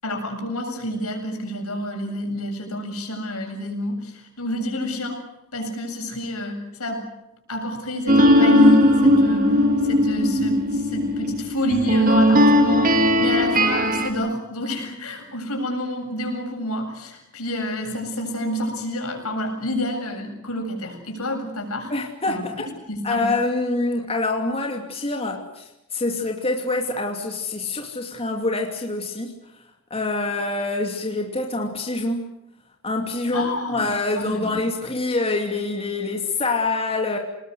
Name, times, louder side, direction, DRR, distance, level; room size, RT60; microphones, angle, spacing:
voice 1, 0.0-5.2 5.5-7.1 7.5-21.9 22.3-22.5 22.9-23.3 33.3-34.6, equal, 75° left, 3 dB, 7.7 m, -28 dB
sound 1, 8.1-14.1, left 1 dB, 40° right, 2.7 m, -17 dB
voice 2, 21.9-22.7 23.0-29.3 29.9-32.3 32.8-37.2, left 2 dB, 25° left, 2 dB, 2.8 m, -25 dB
28.5 x 20.0 x 8.1 m, 0.88 s
head